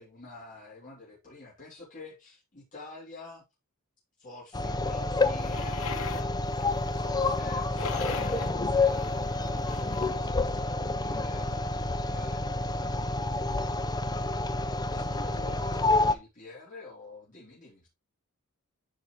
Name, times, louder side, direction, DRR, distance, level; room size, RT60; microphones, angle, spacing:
voice 1, 0.0-3.4 4.2-5.8 6.9-13.9 14.9-17.9, left 3 dB, 35° left, 2.7 m, -48 dB
sound 1, 4.5-16.2, left 2 dB, 20° left, 0.5 m, -29 dB
sound 2, 5.3-10.2, left 5 dB, 70° left, 1.0 m, -40 dB
11.5 x 4.1 x 2.9 m
head